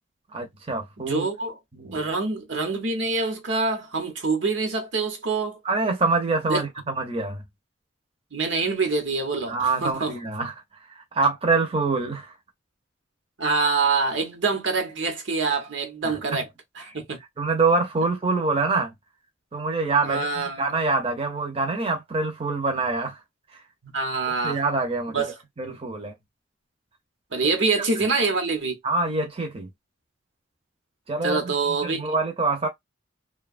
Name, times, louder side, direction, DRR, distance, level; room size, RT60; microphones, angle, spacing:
voice 1, 0.3-1.3 1.7-2.0 5.6-7.4 9.5-10.5 10.9-12.3 16.0-16.4 16.9-17.0 17.4-18.9 19.5-20.3 20.6-23.2 23.5-23.6 24.4-25.2 25.6-26.1 28.8-29.7 31.1-32.7, right 3 dB, 30° right, 0.7 m, -25 dB
voice 2, 1.0-1.5 1.9-5.6 6.5-6.6 8.3-10.1 13.4-16.4 16.9-17.2 20.0-20.7 23.8-24.6 25.1-25.3 25.7-25.8 27.3-28.8 31.2-32.1, right 4 dB, 75° right, 0.9 m, -25 dB
2.7 x 2.3 x 2.4 m
head